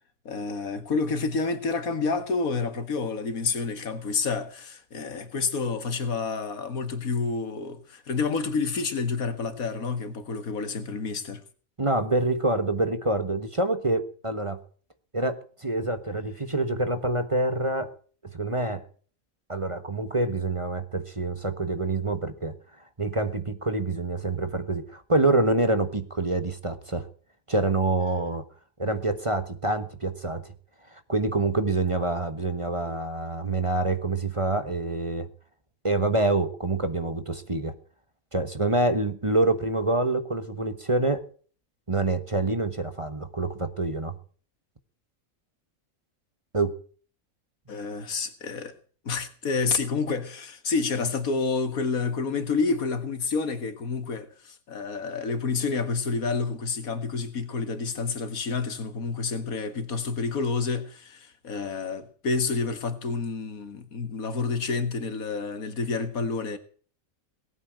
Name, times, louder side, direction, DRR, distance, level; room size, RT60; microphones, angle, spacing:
voice 1, 0.3-11.4 47.7-48.7 49.0-66.6, left 4 dB, 85° left, 2.1 m, -29 dB
voice 2, 11.8-14.6 15.1-17.9 18.3-18.8 19.5-22.5 23.0-27.1 27.5-28.4 28.8-30.4 30.9-35.3 35.8-37.7 38.3-41.3 41.9-44.2 46.5-46.8, right 2 dB, 25° right, 1.2 m, -26 dB
19.0 x 8.9 x 7.7 m
omnidirectional pair, 1.4 m